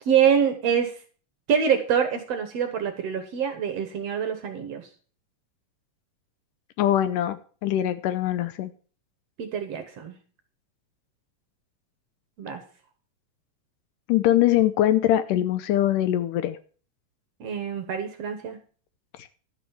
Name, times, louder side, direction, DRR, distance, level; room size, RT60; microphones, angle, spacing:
voice 1, 0.1-1.0 1.5-4.9 9.4-10.1 12.4-12.6 17.4-18.6, right 8 dB, 60° right, 7 dB, 1.9 m, -25 dB
voice 2, 6.8-8.7 14.1-16.6 19.2-19.3, left 12 dB, 80° left, 13 dB, 2.2 m, -22 dB
11.5 x 6.1 x 7.1 m, 0.41 s
omnidirectional pair, 3.8 m